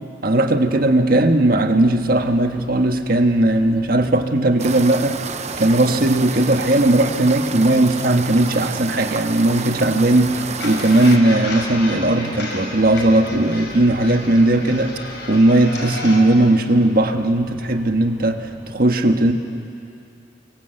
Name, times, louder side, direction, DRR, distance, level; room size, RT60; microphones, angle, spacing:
voice 1, 0.2-5.2 5.6-14.9 15.3-19.3, right 1 dB, 55° right, 5 dB, 1.5 m, -17 dB
sound 1, 0.6-18.7, equal, 10° right, 4.3 m, -45 dB
sound 2, 4.6-11.2, right 5 dB, 40° right, 0.9 m, -30 dB
sound 3, 10.6-16.2, left 2 dB, 70° left, 6.3 m, -32 dB
29.0 x 24.5 x 8.0 m, 2.6 s
head